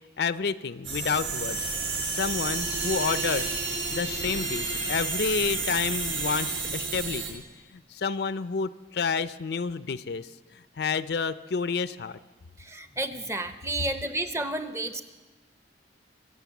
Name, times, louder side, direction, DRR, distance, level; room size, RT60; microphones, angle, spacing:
voice 1, 0.2-1.7 2.0-7.4 7.7-12.2, left 5 dB, 60° left, 14 dB, 0.5 m, -30 dB
sound 1, 0.8-7.3, right 3 dB, 90° right, 4.2 m, -30 dB
voice 2, 12.6-15.0, right 2 dB, 15° right, 9 dB, 0.7 m, -31 dB
24.0 x 8.1 x 7.1 m, 1.2 s
head